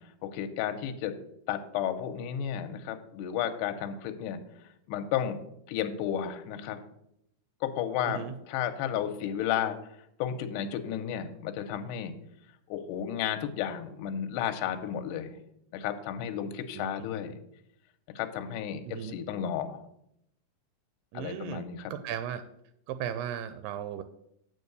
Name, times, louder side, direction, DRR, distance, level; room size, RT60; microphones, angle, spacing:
voice 1, 0.2-1.1 1.5-4.4 4.9-5.4 5.7-6.8 7.6-9.8 10.2-12.1 12.7-15.4 15.7-17.4 18.2-19.8 21.1-21.9, left 9 dB, 80° left, 7 dB, 2.0 m, -33 dB
voice 2, 16.7-17.1 18.8-19.1 21.1-22.4 22.9-24.0, right 9 dB, 85° right, 10 dB, 2.2 m, -36 dB
8.0 x 4.6 x 6.7 m, 0.78 s
omnidirectional pair, 3.9 m